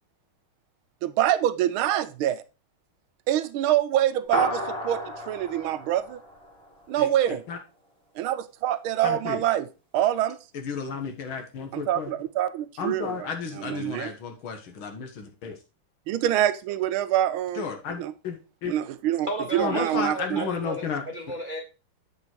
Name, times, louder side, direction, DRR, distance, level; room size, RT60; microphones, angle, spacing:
voice 1, 1.0-2.4 3.3-6.2 6.9-7.4 8.2-9.7 9.9-10.4 11.7-13.3 13.5-14.1 16.1-17.7 18.0-18.1 18.7-20.5, right 12 dB, 80° right, 1.5 m, -25 dB
sound 1, 4.3-7.0, equal, 5° left, 1.9 m, -32 dB
voice 2, 7.0-7.6 9.0-9.4 10.5-12.1 12.8-15.6 17.6-18.7 19.6-21.0, left 6 dB, 70° left, 2.2 m, -33 dB
voice 3, 19.2-21.6, right 1 dB, 40° right, 0.7 m, -34 dB
8.0 x 5.4 x 4.4 m
omnidirectional pair, 2.3 m